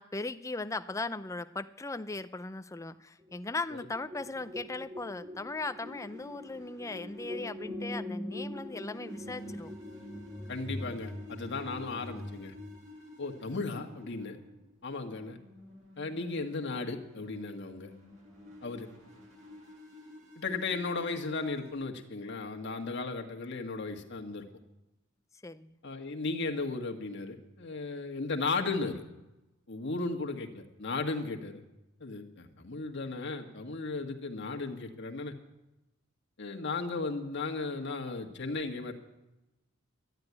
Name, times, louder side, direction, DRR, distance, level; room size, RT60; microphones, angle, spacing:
voice 1, 0.0-9.7 25.4-25.7, left 3 dB, 15° left, 11 dB, 0.5 m, -38 dB
sound 1, 3.2-12.8, left 1 dB, 25° right, 2.1 m, -42 dB
sound 2, 4.2-21.7, left 2 dB, 70° right, 7.5 m, -52 dB
voice 2, 10.5-12.5 13.2-14.4 14.8-15.4 16.0-17.9 18.6-18.9 20.4-24.5 25.8-29.0 29.7-31.6 32.0-35.3 36.4-38.9, left 3 dB, 60° left, 3 dB, 1.6 m, -35 dB
12.5 x 10.5 x 9.6 m, 0.97 s
head